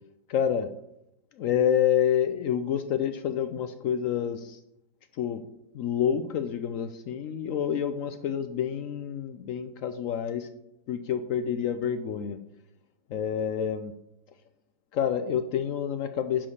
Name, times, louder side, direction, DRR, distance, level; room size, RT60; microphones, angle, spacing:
voice 1, 0.3-0.7 1.4-4.6 5.2-5.4 5.7-10.5 10.9-12.4 13.1-13.9 14.9-16.5, left 9 dB, 70° left, 9 dB, 0.8 m, -28 dB
10.0 x 3.8 x 6.4 m, 0.82 s
omnidirectional pair, 1.8 m